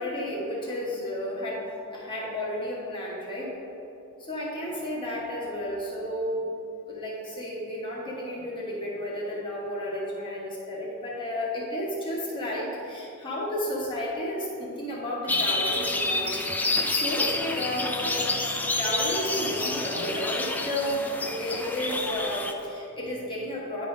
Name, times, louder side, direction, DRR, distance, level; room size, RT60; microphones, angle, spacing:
voice 1, 0.0-3.6 4.2-6.5 6.9-16.4 16.9-18.3 18.6-23.9, left 1 dB, 25° left, -6 dB, 1.4 m, -32 dB
sound 1, 15.3-22.5, left 2 dB, 10° left, 0.4 m, -28 dB
9.9 x 3.6 x 5.1 m, 2.9 s
head